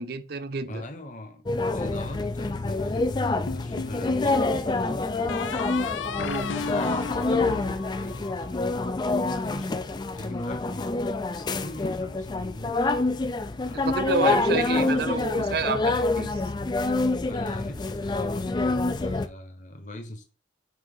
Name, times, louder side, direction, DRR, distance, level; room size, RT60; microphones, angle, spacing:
voice 1, 0.0-0.8 6.2-6.6 13.7-16.4, right 4 dB, 55° right, 0.5 m, -29 dB
voice 2, 0.6-5.6 6.5-9.8 10.2-10.9 11.6-12.8 13.6-13.9 14.2-15.4 17.2-20.2, left 1 dB, 40° left, 1.0 m, -41 dB
sound 1, 1.5-19.3, left 3 dB, 25° left, 0.3 m, -27 dB
sound 2, 3.5-4.3 5.3-8.6, left 5 dB, 80° left, 0.5 m, -34 dB
6.2 x 2.8 x 5.4 m
head